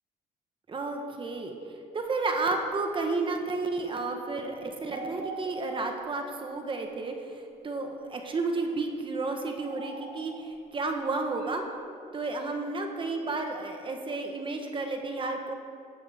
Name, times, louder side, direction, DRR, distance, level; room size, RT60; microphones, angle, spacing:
voice 1, 0.7-1.6 1.9-11.6 12.1-15.5, right 3 dB, 30° right, 3 dB, 1.2 m, -32 dB
sound 1, 4.2-4.5 4.9-6.2 6.7-6.8 7.5-8.1 9.3-10.6 11.4-11.5, right 3 dB, 90° right, 2.3 m, -43 dB
16.0 x 10.5 x 3.6 m, 2.4 s
cardioid pair, 110°, 17 cm